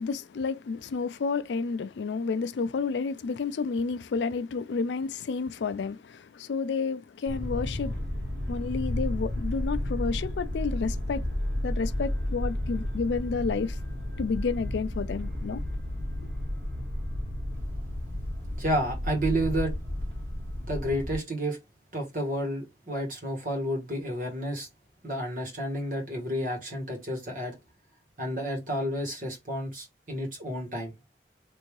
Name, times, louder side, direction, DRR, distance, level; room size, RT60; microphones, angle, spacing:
voice 1, 0.0-7.9 8.4-11.3 11.6-13.8 14.2-15.6, left 4 dB, 75° left, 0.4 m, -30 dB
sound 1, 7.3-21.2, left 1 dB, 80° right, 2.0 m, -32 dB
voice 2, 18.6-19.7 20.7-21.6 21.9-24.7 25.0-27.6 28.2-30.9, equal, 45° right, 1.3 m, -30 dB
3.5 x 2.6 x 3.1 m
head